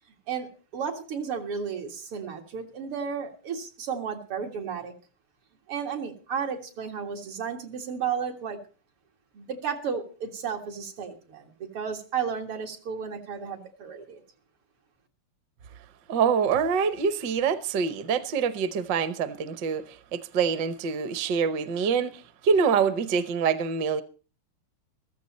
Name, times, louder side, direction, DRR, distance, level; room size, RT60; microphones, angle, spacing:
voice 1, 0.3-4.9 5.7-8.6 9.3-14.2, right 6 dB, 85° right, 2.8 m, -33 dB
voice 2, 16.1-24.0, right 6 dB, 60° right, 1.4 m, -25 dB
15.0 x 14.0 x 4.2 m
omnidirectional pair, 2.4 m